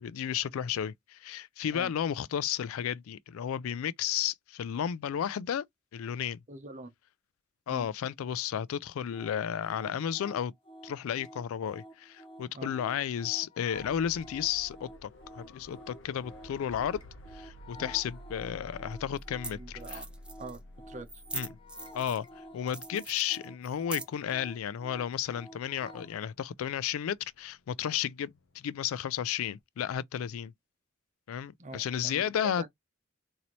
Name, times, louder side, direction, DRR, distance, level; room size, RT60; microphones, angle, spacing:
voice 1, 0.0-5.6 5.9-6.4 7.7-10.5 10.8-15.1 15.4-17.0 17.3-20.0 21.3-21.5 21.9-22.3 22.5-30.5 31.3-32.6, left 9 dB, 85° left, 0.3 m, -33 dB
voice 2, 6.5-6.9 7.7-7.9 12.5-12.7 17.7-17.9 19.5-20.1 20.4-20.6 20.9-21.1 31.6-32.7, right 2 dB, 35° right, 0.9 m, -44 dB
sound 1, 9.1-26.2, equal, 25° left, 0.7 m, -51 dB
sound 2, 13.7-29.6, equal, 65° left, 0.8 m, -53 dB
sound 3, 18.3-18.4 19.2-19.3 19.4-19.5 19.8-20.6 21.1-22.3 22.7-24.3, right 2 dB, 5° right, 0.4 m, -41 dB
4.0 x 2.8 x 3.0 m
head